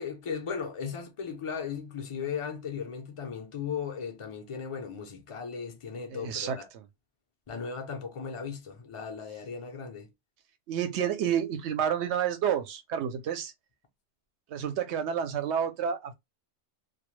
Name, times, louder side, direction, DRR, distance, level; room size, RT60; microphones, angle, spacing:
voice 1, 0.0-6.7 7.5-10.1, left 6 dB, 40° left, 0.5 m, -37 dB
voice 2, 6.1-6.6 10.7-13.5 14.5-16.1, right 8 dB, 75° right, 0.9 m, -29 dB
2.3 x 2.1 x 3.0 m
omnidirectional pair, 1.2 m